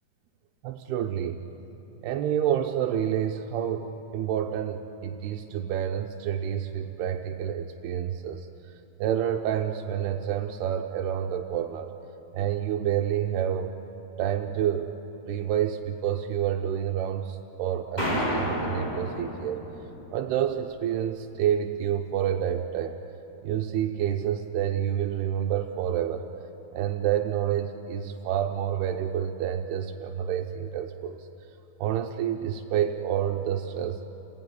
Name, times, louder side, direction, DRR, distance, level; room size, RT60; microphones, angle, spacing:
voice 1, 0.6-1.4 2.0-8.5 9.0-11.9 12.3-13.7 14.2-14.9 15.3-19.6 20.1-23.0 23.4-26.3 26.7-31.3 31.8-34.0, right 10 dB, 90° right, 2 dB, 2.9 m, -28 dB
sound 1, 18.0-20.4, equal, 10° left, 5.0 m, -30 dB
29.5 x 16.0 x 9.8 m, 3.0 s
omnidirectional pair, 4.6 m